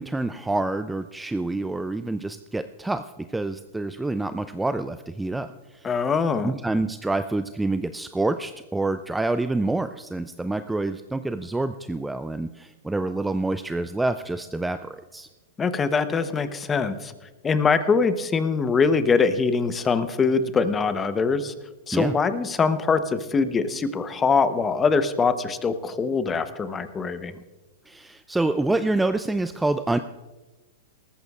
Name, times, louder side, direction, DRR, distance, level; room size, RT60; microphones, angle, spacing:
voice 1, 0.0-5.9 6.4-15.3 21.9-22.2 27.9-30.0, right 2 dB, 5° right, 10 dB, 0.4 m, -27 dB
voice 2, 5.8-6.5 15.6-17.1 17.4-21.5 21.9-27.4, left 5 dB, 20° left, 11 dB, 0.8 m, -23 dB
19.0 x 14.0 x 2.4 m, 1.2 s
hypercardioid pair, 125°, 0 cm